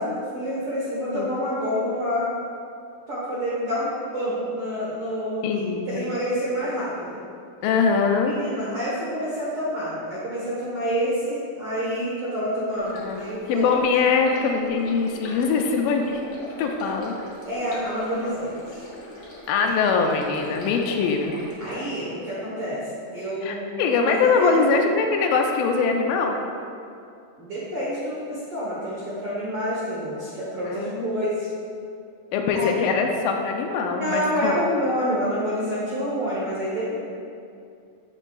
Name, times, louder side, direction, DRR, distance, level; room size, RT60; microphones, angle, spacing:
voice 1, 0.0-2.3 3.1-5.6 5.9-7.2 8.2-13.6 17.4-18.8 21.6-22.8 23.1-24.7 27.4-31.5 32.5-32.9 34.0-37.0, equal, 70° right, -8 dB, 1.3 m, -28 dB
voice 2, 5.4-6.0 7.6-8.3 12.9-16.2 16.6-17.2 19.5-21.4 23.4-26.4 30.7-31.2 32.3-34.6 36.9-37.0, left 5 dB, 80° left, 3 dB, 2.2 m, -22 dB
Stream, 12.7-21.8, left 1 dB, 55° left, 1.1 m, -41 dB
9.8 x 6.4 x 2.3 m, 2.4 s
omnidirectional pair, 4.2 m